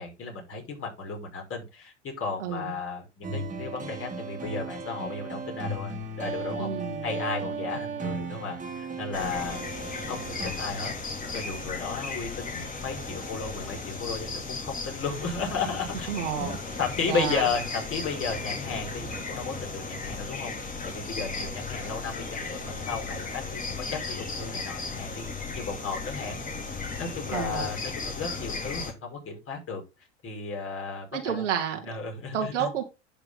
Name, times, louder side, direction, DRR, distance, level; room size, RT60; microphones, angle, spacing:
voice 1, 0.0-6.7 7.0-9.6 10.1-10.9 11.3-16.1 16.4-16.5 16.8-25.2 25.5-26.4 27.0-29.8 30.2-31.4 31.8-32.7, left 4 dB, 35° left, 1 dB, 5.7 m, -34 dB
voice 2, 2.4-2.7 6.6-7.1 16.1-16.6 17.1-17.4 27.3-27.7 31.1-31.8 32.3-32.8, right 8 dB, 75° right, 3 dB, 2.4 m, -30 dB
sound 1, 3.2-10.5, right 3 dB, 20° right, 2.6 m, -35 dB
sound 2, 9.1-28.9, left 3 dB, 20° left, 2.9 m, -35 dB
10.5 x 6.7 x 3.8 m, 0.26 s
hypercardioid pair, 85°, 36 cm